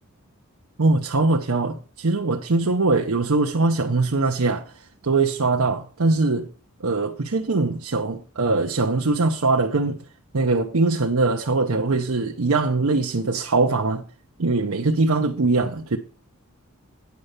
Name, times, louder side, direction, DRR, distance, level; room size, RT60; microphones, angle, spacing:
voice 1, 0.8-4.7 5.0-6.5 6.8-10.0 10.3-14.0 14.4-16.0, right 3 dB, 80° right, 0.8 m, -22 dB
9.4 x 5.5 x 6.5 m
head